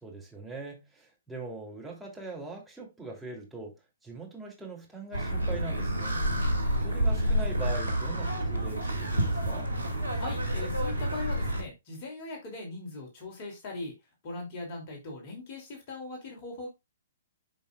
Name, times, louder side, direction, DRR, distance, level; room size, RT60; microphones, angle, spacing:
voice 1, 0.0-3.7 4.0-6.5 6.8-9.7, right 3 dB, 5° right, 3.0 m, -41 dB
sound 1, 5.1-11.6, right 1 dB, 85° right, 2.0 m, -29 dB
voice 2, 10.1-13.9 14.2-16.7, left 2 dB, 35° left, 2.8 m, -40 dB
10.5 x 5.3 x 2.4 m
figure-of-eight pair, 120°, 0 cm